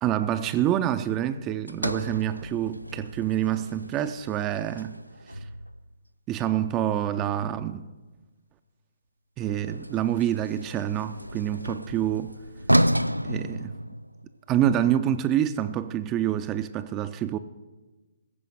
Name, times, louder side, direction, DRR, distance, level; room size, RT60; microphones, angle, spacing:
voice 1, 0.0-5.0 6.3-7.9 9.4-12.3 13.2-13.8 14.5-17.4, right 11 dB, 20° right, 0.4 m, -27 dB
Sliding door, 1.7-5.9 9.4-14.4, equal, 85° right, 0.3 m, -31 dB
15.0 x 5.1 x 9.1 m
figure-of-eight pair, 130°, 0 cm